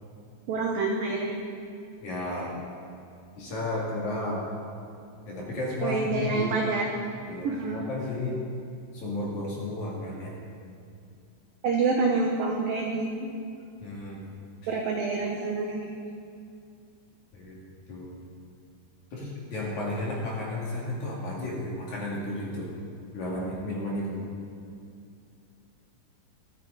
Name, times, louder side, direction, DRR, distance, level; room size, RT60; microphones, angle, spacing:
voice 1, 0.5-1.4 5.8-6.9 7.4-7.8 11.6-13.3 14.7-15.9, right 3 dB, 85° right, 1 dB, 2.0 m, -27 dB
voice 2, 2.0-2.5 3.4-4.4 5.3-6.5 7.3-8.4 8.9-10.3 13.8-14.2 17.3-17.6 17.9-18.1 19.1-22.7 23.1-24.2, left 2 dB, 50° left, -4 dB, 2.9 m, -33 dB
25.0 x 9.2 x 4.0 m, 2.5 s
omnidirectional pair, 5.6 m